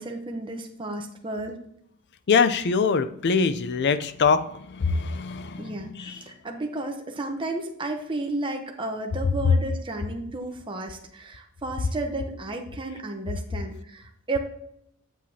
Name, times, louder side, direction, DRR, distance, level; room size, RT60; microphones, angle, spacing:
voice 1, 0.0-1.6 5.6-14.4, right 2 dB, 25° right, 2 dB, 0.8 m, -33 dB
voice 2, 2.3-6.3 9.4-9.6, left 5 dB, 55° left, 13 dB, 0.5 m, -23 dB
7.5 x 7.4 x 2.8 m, 0.72 s
head